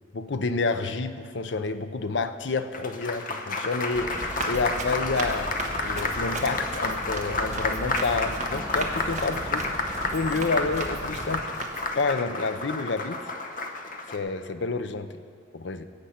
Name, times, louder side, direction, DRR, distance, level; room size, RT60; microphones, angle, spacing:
voice 1, 0.1-5.5 5.8-9.6 10.1-11.7 12.0-13.2 14.1-15.2 15.5-15.8, left 3 dB, 70° left, 10 dB, 0.6 m, -29 dB
Applause, 2.5-14.2, left 3 dB, 50° left, 0.9 m, -31 dB
sound 1, 3.9-11.4, equal, 15° left, 2.5 m, -38 dB
Run, 4.1-12.0, right 3 dB, 40° right, 1.3 m, -38 dB
16.5 x 8.2 x 5.8 m, 2.2 s
head